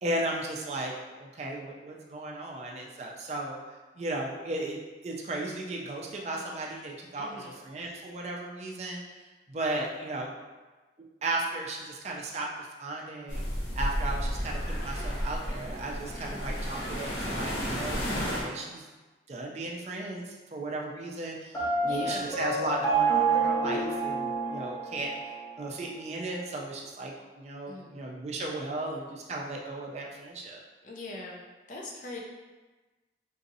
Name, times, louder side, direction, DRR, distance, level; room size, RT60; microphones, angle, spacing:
voice 1, 0.0-3.6 4.0-10.3 11.2-13.4 13.7-18.9 19.3-25.1 25.6-30.6, right 2 dB, 40° right, -1 dB, 0.4 m, -35 dB
voice 2, 7.2-7.6 16.2-16.5 21.8-22.4 27.7-28.0 30.8-31.4 31.7-32.2, left 2 dB, 45° left, -1 dB, 0.5 m, -41 dB
sound 1, 13.3-18.4, equal, 90° left, 0.8 m, -32 dB
Piano, 21.5-25.4, right 4 dB, 15° left, 0.8 m, -28 dB
3.9 x 2.6 x 2.6 m, 1.2 s
head